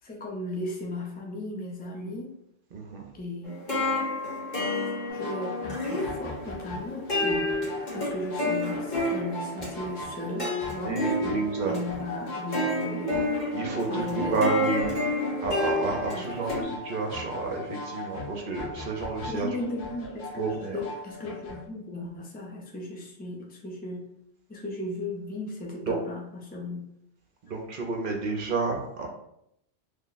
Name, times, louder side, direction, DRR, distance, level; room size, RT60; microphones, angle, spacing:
voice 1, 0.0-2.3 3.1-3.7 5.1-13.3 13.9-14.5 16.1-16.3 16.5-16.8 19.3-24.1 24.5-26.8, left 1 dB, 10° left, -2 dB, 0.5 m, -36 dB
voice 2, 2.7-3.1 7.9-8.0 10.8-11.8 13.5-15.1 15.4-19.5 20.4-20.8 25.9-26.0 27.4-29.1, right 3 dB, 55° right, 1 dB, 0.7 m, -30 dB
sound 1, 3.4-16.6, left 1 dB, 40° left, 1.3 m, -30 dB
sound 2, 5.1-21.6, left 2 dB, 65° left, 1.1 m, -39 dB
3.4 x 2.2 x 3.8 m, 0.76 s
omnidirectional pair, 1.2 m